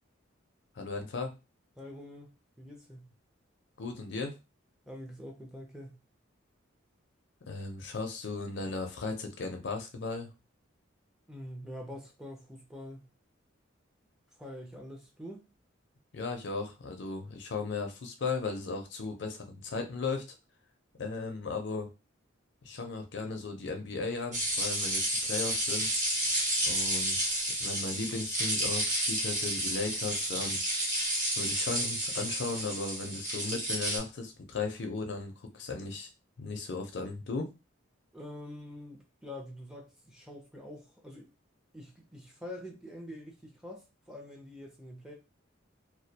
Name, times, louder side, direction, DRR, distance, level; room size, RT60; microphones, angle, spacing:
voice 1, 0.8-1.3 3.8-4.3 7.5-10.3 16.1-20.2 21.0-21.9 22.6-25.9 26.6-30.6 31.4-36.1 36.4-37.5, left 3 dB, 60° left, 0.5 m, -36 dB
voice 2, 1.8-2.3 2.6-3.1 4.9-6.0 11.3-13.1 14.4-15.5 38.1-41.3 41.7-45.1, left 1 dB, 5° right, 0.4 m, -45 dB
sound 1, 24.3-34.0, right 1 dB, 35° right, 0.8 m, -31 dB
2.2 x 2.1 x 2.7 m
head